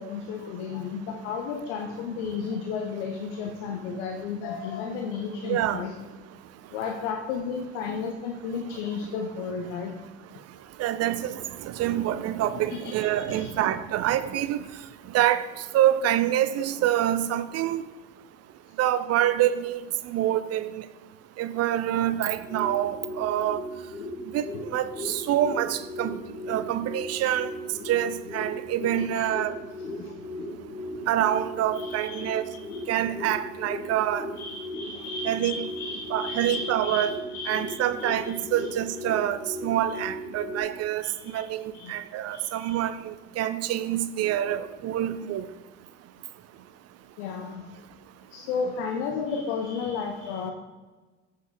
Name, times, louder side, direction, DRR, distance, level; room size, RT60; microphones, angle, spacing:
voice 1, 0.0-5.9 6.7-9.9 12.7-13.5 29.0-29.3 30.0-30.1 31.7-32.3 32.7-32.8 34.4-38.3 41.0-41.5 41.7-41.9 42.3-42.8 47.2-47.7 48.3-50.5, left 5 dB, 65° left, 1.0 m, -33 dB
voice 2, 5.5-5.8 10.8-14.7 15.1-15.4 15.7-17.8 18.8-20.8 21.4-23.6 24.3-24.4 24.7-26.2 26.5-27.5 27.9-29.5 31.1-32.4 32.9-34.3 35.2-35.7 36.1-37.1 37.5-41.0 41.3-41.6 41.9-45.4, right 12 dB, 40° right, 0.6 m, -26 dB
sound 1, 22.2-40.6, left 1 dB, 85° left, 1.3 m, -37 dB
14.0 x 4.8 x 3.6 m
figure-of-eight pair, 55°, 37 cm